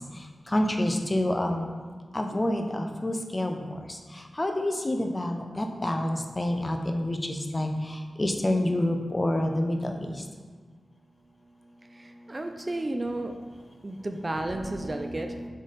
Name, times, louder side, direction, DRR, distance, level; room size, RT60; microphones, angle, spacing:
voice 1, 0.5-1.7 2.1-3.6 4.4-7.7 8.2-10.1 14.8-14.9, left 1 dB, 25° left, 4 dB, 0.7 m, -27 dB
voice 2, 11.9-13.4 13.8-15.4, right 1 dB, 30° right, 5 dB, 0.4 m, -32 dB
7.5 x 3.4 x 4.2 m, 1.5 s
wide cardioid pair, 75°, 0 cm